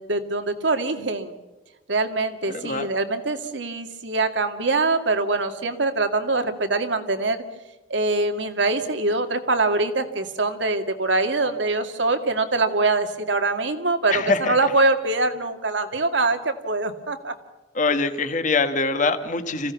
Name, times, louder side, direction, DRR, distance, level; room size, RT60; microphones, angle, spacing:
voice 1, 0.0-1.3 1.9-7.4 7.9-17.3, right 3 dB, 80° right, 7 dB, 2.2 m, -23 dB
voice 2, 2.5-2.9 14.1-14.7 17.7-19.7, left 3 dB, 45° left, 8 dB, 1.5 m, -23 dB
27.0 x 16.0 x 7.0 m, 1.1 s
head